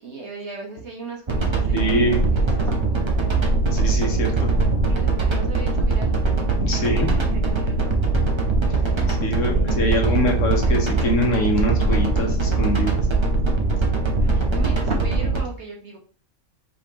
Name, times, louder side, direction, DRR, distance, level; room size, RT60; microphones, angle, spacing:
voice 1, 0.0-3.1 4.9-6.2 6.7-6.8 7.1-8.3 9.5-10.2 14.2-16.0, right 3 dB, 50° right, -1 dB, 1.3 m, -37 dB
sound 1, 1.3-15.4, right 3 dB, 30° right, 0.6 m, -21 dB
voice 2, 1.7-2.2 3.7-4.5 6.6-7.1 9.1-13.0, equal, 60° left, 1 dB, 1.3 m, -24 dB
5.2 x 3.3 x 3.0 m, 0.43 s
omnidirectional pair, 1.5 m